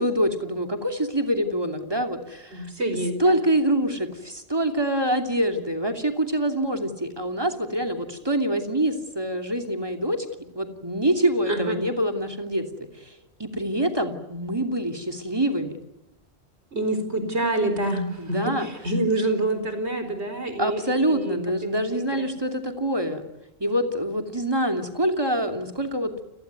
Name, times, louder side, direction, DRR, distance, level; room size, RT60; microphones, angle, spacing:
voice 1, 0.0-2.7 3.2-10.2 10.5-12.6 13.0-15.7 18.2-18.7 20.6-23.2 23.6-26.1, right 1 dB, 20° right, 5 dB, 2.8 m, -25 dB
voice 2, 2.5-3.4 11.5-11.8 16.7-22.3, right 1 dB, 80° right, 8 dB, 4.6 m, -27 dB
29.5 x 18.0 x 9.4 m, 0.89 s
omnidirectional pair, 1.1 m